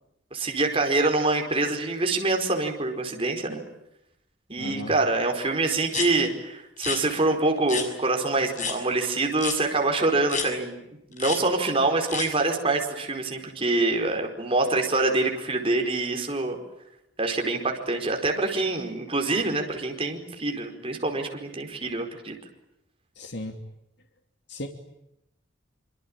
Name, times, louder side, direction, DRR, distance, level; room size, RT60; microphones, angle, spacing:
voice 1, 0.3-3.6 4.5-10.8 11.1-16.6 17.2-22.3, right 2 dB, 30° right, 3 dB, 4.8 m, -25 dB
voice 2, 4.6-4.9 23.2-23.6 24.5-24.7, left 1 dB, 65° left, 4 dB, 2.9 m, -35 dB
sound 1, 5.9-6.1 6.8-7.0 7.7-7.9 8.5-8.8 9.4-9.6 10.3-10.5 11.2-11.4 12.1-12.3, left 5 dB, 40° left, 6.2 m, -29 dB
26.0 x 25.5 x 8.9 m, 0.83 s
head